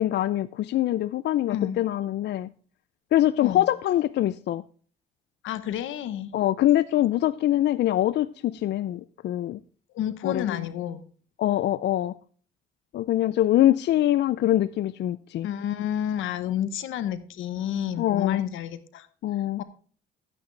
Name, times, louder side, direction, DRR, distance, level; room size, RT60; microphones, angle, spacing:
voice 1, 0.0-2.5 3.1-4.6 6.3-9.6 10.2-10.7 11.4-12.1 12.9-15.5 18.0-18.4 19.2-19.6, left 13 dB, 60° left, 0.4 m, -24 dB
voice 2, 5.4-6.3 9.9-11.0 15.4-19.1 19.6-19.7, left 10 dB, 85° left, 1.0 m, -30 dB
12.0 x 9.7 x 3.2 m
cardioid pair, 90°, 20 cm